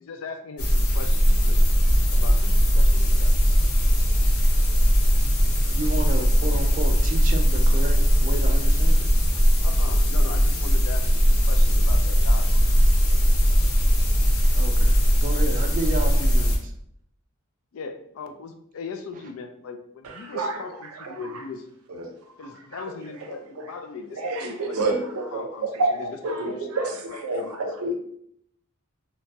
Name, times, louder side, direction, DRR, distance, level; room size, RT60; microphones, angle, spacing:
voice 1, 0.1-1.6 2.1-3.3 6.5-6.6 9.6-12.6 17.7-21.7 22.4-24.8 25.3-27.7, left 4 dB, 65° left, 7 dB, 0.4 m, -39 dB
sound 1, 0.6-16.6, equal, 85° left, 0.8 m, -19 dB
voice 2, 5.7-9.1 14.5-16.7 19.1-19.2, right 2 dB, 40° right, 4 dB, 0.3 m, -32 dB
voice 3, 20.0-21.4 21.9-22.1 22.7-22.8 23.6-23.7 24.1-27.9, right 2 dB, 90° right, 3 dB, 0.6 m, -29 dB
3.0 x 2.2 x 2.7 m, 0.68 s
head